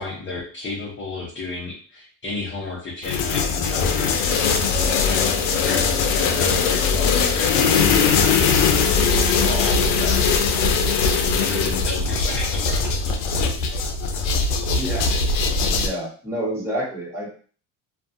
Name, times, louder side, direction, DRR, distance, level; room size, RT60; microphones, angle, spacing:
voice 1, 0.0-4.4 5.0-7.9 8.2-8.6 8.9-10.8 11.1-13.0, left 3 dB, 30° left, -5 dB, 0.8 m, -33 dB
sound 1, 3.0-15.9, left 5 dB, 90° left, 0.6 m, -20 dB
voice 2, 14.7-15.1 15.7-17.3, equal, 5° right, -5 dB, 1.3 m, -28 dB
2.5 x 2.4 x 2.6 m, 0.41 s
supercardioid pair, 105°, 40 cm